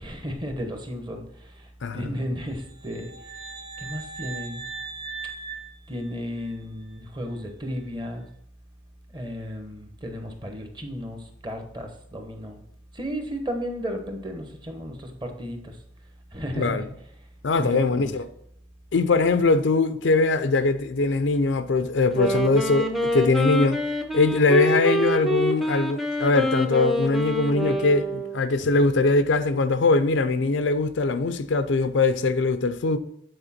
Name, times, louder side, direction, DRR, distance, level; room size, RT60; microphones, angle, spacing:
voice 1, 0.0-3.1 3.8-4.6 5.9-8.3 9.1-12.6 12.9-15.8 16.3-16.9 17.6-18.2 28.7-28.9, equal, 25° right, 0.9 m, -34 dB
sound 1, 2.6-6.6, right 5 dB, 80° right, 1.6 m, -39 dB
voice 2, 17.4-18.2 18.9-23.8 24.1-33.0, left 3 dB, 85° left, 0.5 m, -22 dB
Wind instrument woodwind instrument, 22.0-28.6, equal, ahead, 0.5 m, -26 dB
8.0 x 4.4 x 4.2 m
head